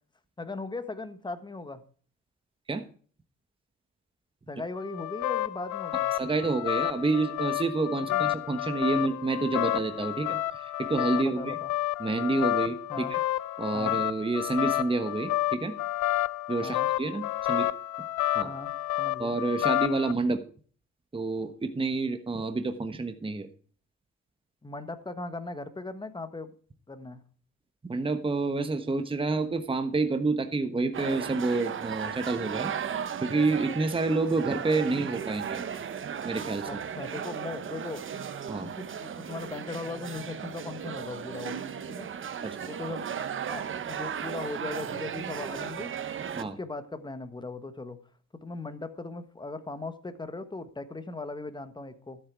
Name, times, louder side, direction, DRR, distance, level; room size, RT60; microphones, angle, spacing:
voice 1, 0.4-1.8 4.5-6.1 8.0-8.2 11.1-11.7 12.9-13.1 13.7-14.0 16.6-16.9 18.4-18.7 19.0-19.4 24.6-26.5 26.9-27.2 36.7-38.0 38.6-41.6 42.0-42.1 42.6-43.1 43.4-45.9 46.4-48.0 48.3-52.2, left 3 dB, 15° left, 10 dB, 1.4 m, -38 dB
sound 1, 4.8-20.1, left 14 dB, 80° left, 0.6 m, -30 dB
voice 2, 6.2-11.6 12.0-13.2 13.6-15.8 16.5-17.7 18.3-18.5 19.2-20.4 21.1-23.5 27.8-32.7 33.2-35.6 36.2-36.7 38.5-38.7 42.4-42.7 46.4-46.6, right 3 dB, 20° right, 8 dB, 1.3 m, -29 dB
sound 2, 30.9-46.4, right 8 dB, 45° right, 1.0 m, -36 dB
13.0 x 8.0 x 4.7 m, 0.43 s
cardioid pair, 110°, 29 cm